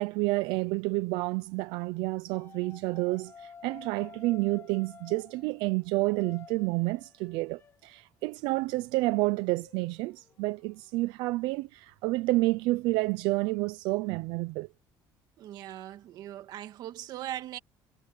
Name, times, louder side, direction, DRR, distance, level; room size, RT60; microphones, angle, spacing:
voice 1, 0.0-14.7, right 22 dB, 90° right, 0.6 m, -29 dB
sound 1, 2.3-8.0 8.5-10.9 12.4-13.4, left 6 dB, 30° left, 1.0 m, -53 dB
voice 2, 15.4-17.6, right 12 dB, 60° right, 2.2 m, -40 dB
cardioid pair, 140°, 8 cm